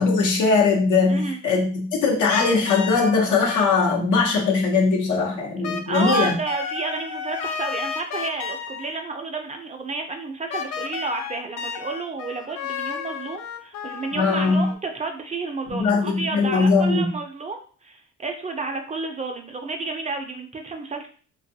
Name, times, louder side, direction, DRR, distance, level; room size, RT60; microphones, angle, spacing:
voice 1, 0.0-6.4 14.1-14.7 15.7-17.1, left 4 dB, 80° left, 0 dB, 0.8 m, -20 dB
voice 2, 1.1-1.4 5.9-21.1, right 3 dB, 25° right, 4 dB, 0.4 m, -31 dB
sound 1, 2.3-3.2 3.5-4.0 5.6-9.1 10.5-14.7, left 6 dB, 60° left, 0.4 m, -32 dB
2.6 x 2.3 x 2.6 m, 0.42 s
cardioid pair, 90°, 30 cm